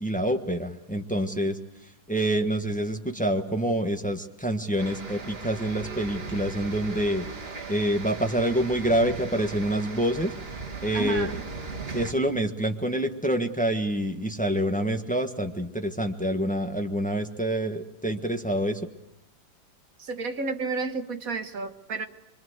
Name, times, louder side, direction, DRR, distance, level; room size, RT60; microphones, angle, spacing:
voice 1, 0.0-1.6 2.1-7.3 7.7-10.3 10.8-11.4 11.9-18.8, right 1 dB, 5° left, 5 dB, 1.1 m, -27 dB
sound 1, 4.8-12.1, right 4 dB, 30° right, 2.2 m, -38 dB
voice 2, 10.9-11.4 20.0-22.1, right 4 dB, 45° right, 8 dB, 1.4 m, -31 dB
24.5 x 24.5 x 8.0 m, 0.83 s
omnidirectional pair, 2.3 m